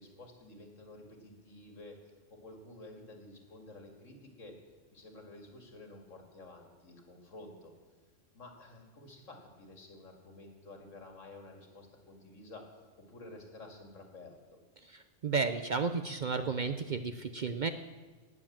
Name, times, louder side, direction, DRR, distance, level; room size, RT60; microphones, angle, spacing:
voice 1, 0.0-2.0 2.3-4.6 4.9-7.7 8.3-14.6, left 2 dB, 85° left, 3 dB, 2.5 m, -51 dB
voice 2, 14.8-17.7, right 5 dB, 55° right, 9 dB, 0.5 m, -33 dB
18.0 x 7.4 x 7.3 m, 1.3 s
omnidirectional pair, 1.3 m